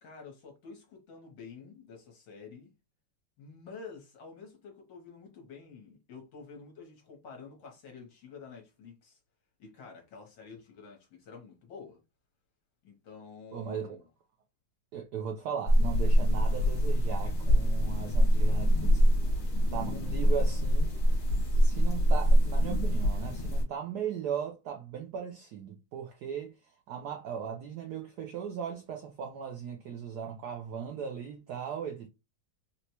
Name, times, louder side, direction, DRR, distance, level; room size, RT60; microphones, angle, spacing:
voice 1, 0.0-2.7 3.4-9.2 9.6-12.0 12.8-14.1, left 5 dB, 65° left, 1.6 m, -49 dB
voice 2, 13.5-14.0 14.9-19.1 19.7-21.0 21.6-26.5 26.9-32.1, right 7 dB, 85° right, 0.8 m, -37 dB
sound 1, 15.7-23.6, equal, 50° left, 0.8 m, -24 dB
4.1 x 2.1 x 2.9 m
omnidirectional pair, 2.3 m